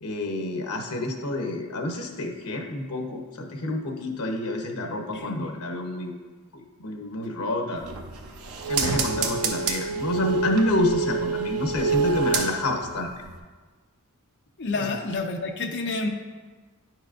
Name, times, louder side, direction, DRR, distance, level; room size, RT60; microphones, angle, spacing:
voice 1, 0.0-6.1 6.5-7.8 8.7-13.1, left 2 dB, 80° left, 3 dB, 1.0 m, -28 dB
voice 2, 5.1-5.4 14.6-16.1, left 3 dB, 50° left, 3 dB, 0.8 m, -29 dB
sound 1, 7.8-12.9 13.3-13.4, right 5 dB, 75° right, 0.7 m, -27 dB
9.9 x 6.2 x 2.5 m, 1.4 s
head